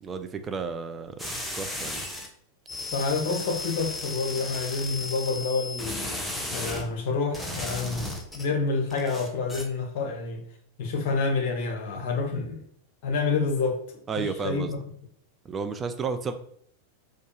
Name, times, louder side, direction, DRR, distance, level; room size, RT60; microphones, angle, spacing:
voice 1, 0.0-2.0 14.1-14.7 15.4-16.3, right 5 dB, 20° right, 8 dB, 0.3 m, -32 dB
sound 1, 1.2-2.3 2.7-6.8 7.3-8.5 8.9-9.6, left 2 dB, 5° left, 0.7 m, -35 dB
voice 2, 2.9-6.1 6.5-10.4 10.8-12.6 13.0-14.8, left 4 dB, 50° left, 3 dB, 0.9 m, -28 dB
4.3 x 2.3 x 3.1 m, 0.62 s
figure-of-eight pair, 90°, 0 cm